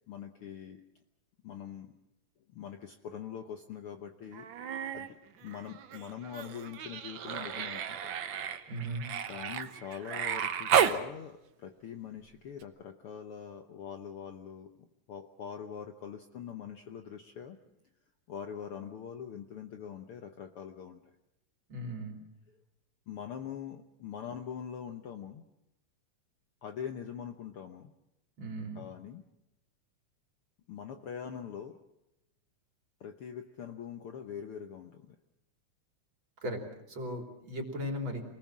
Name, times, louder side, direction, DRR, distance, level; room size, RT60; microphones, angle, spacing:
voice 1, 0.1-0.8 1.4-2.0 2.5-4.5 4.8-8.1 9.2-14.7 15.1-17.6 18.3-21.0 22.5-22.6 23.1-25.4 26.6-27.9 28.7-29.2 30.7-31.8 33.0-35.2, left 8 dB, 60° left, 6 dB, 1.6 m, -43 dB
Human voice, 4.3-5.1 5.4-11.0 12.6-12.7, right 8 dB, 60° right, 1.3 m, -33 dB
voice 2, 8.7-9.0 21.7-22.2 28.4-28.8 36.4-36.6 36.9-38.2, equal, 40° right, 3 dB, 3.8 m, -37 dB
27.0 x 20.0 x 7.5 m, 0.88 s
omnidirectional pair, 3.5 m